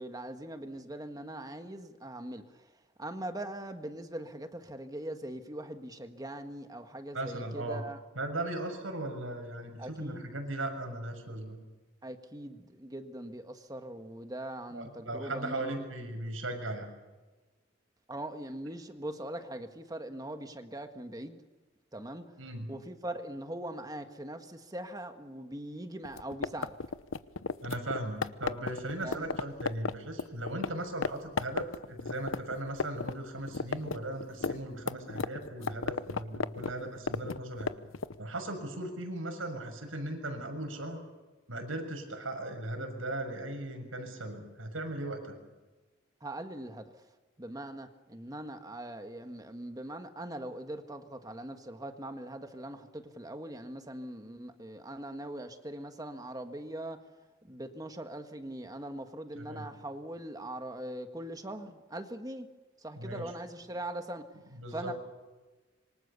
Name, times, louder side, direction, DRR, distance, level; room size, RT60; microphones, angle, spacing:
voice 1, 0.0-8.0 9.8-10.3 12.0-15.8 18.1-21.4 21.9-22.3 22.7-26.8 29.0-29.3 46.2-46.9 47.4-57.1 57.4-62.5 62.8-64.2 64.7-64.9, right 1 dB, 20° right, 7 dB, 1.7 m, -41 dB
voice 2, 7.1-7.8 8.2-11.6 14.7-16.9 22.4-22.7 27.6-37.7 38.2-41.0 41.5-45.3 59.4-59.7 63.0-63.3 64.6-64.9, right 1 dB, 85° right, 5 dB, 6.9 m, -38 dB
sound 1, 26.0-30.7 31.0-31.1 31.4-33.1 33.4-38.2, left 4 dB, 85° left, 0.9 m, -33 dB
26.5 x 24.5 x 7.0 m, 1.2 s
head